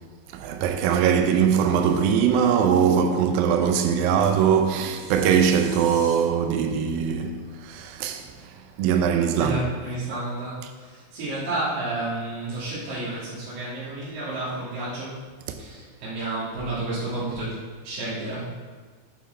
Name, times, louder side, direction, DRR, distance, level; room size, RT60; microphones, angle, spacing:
voice 1, 0.3-8.3 8.8-9.6, right 7 dB, 85° right, 2.1 m, -21 dB
sound 1, 4.3-6.1, equal, 20° right, 1.3 m, -44 dB
voice 2, 9.4-15.2 15.5-17.5 17.8-18.7, right 2 dB, 55° right, 2.7 m, -31 dB
9.5 x 5.7 x 4.3 m
omnidirectional pair, 4.9 m